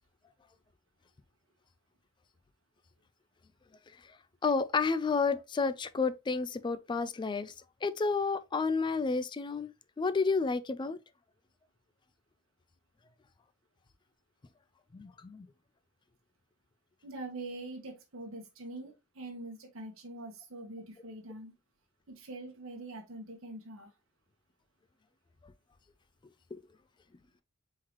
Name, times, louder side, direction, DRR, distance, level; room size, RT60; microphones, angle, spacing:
voice 1, 4.4-7.5 7.8-11.0 14.9-15.5 26.5-26.6, left 4 dB, 20° left, 0.3 m, -31 dB
voice 2, 17.0-21.5 22.1-23.9, right 2 dB, 70° right, 1.1 m, -44 dB
4.6 x 3.8 x 3.0 m
head